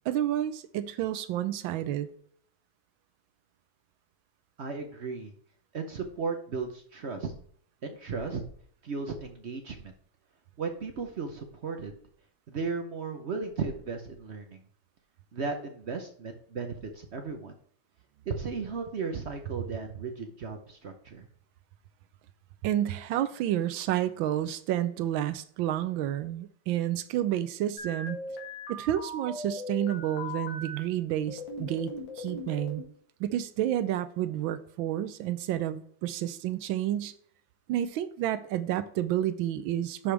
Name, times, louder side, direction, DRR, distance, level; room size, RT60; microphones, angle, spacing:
voice 1, 0.1-2.1 22.6-28.2 28.7-32.8 33.2-37.1 37.7-40.1, right 12 dB, 85° right, 13 dB, 1.4 m, -30 dB
voice 2, 4.6-5.3 5.7-7.3 7.8-8.4 8.8-9.9 10.6-12.0 12.5-14.6 15.3-17.5 18.3-21.3, right 4 dB, 60° right, 5 dB, 0.7 m, -35 dB
sound 1, 27.8-30.8 31.3-32.9, left 2 dB, 75° left, 2.5 m, -39 dB
11.0 x 5.0 x 3.3 m, 0.62 s
omnidirectional pair, 2.1 m